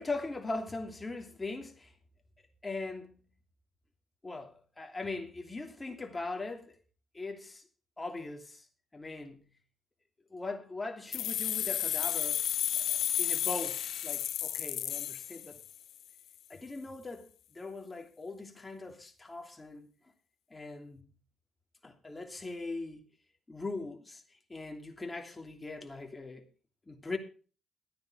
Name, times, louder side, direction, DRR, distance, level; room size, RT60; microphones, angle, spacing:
voice 1, 0.0-1.9 2.6-3.1 4.2-6.8 7.1-7.7 8.0-8.7 8.9-9.5 10.3-12.6 12.9-15.6 16.5-19.9 20.5-21.1 21.8-23.0 23.5-24.2 24.5-26.4 26.9-27.2, left 3 dB, 20° left, 2.9 m, -40 dB
sound 1, 11.1-15.9, left 11 dB, 75° left, 0.9 m, -32 dB
13.5 x 9.3 x 5.0 m
cardioid pair, 90°, 0 cm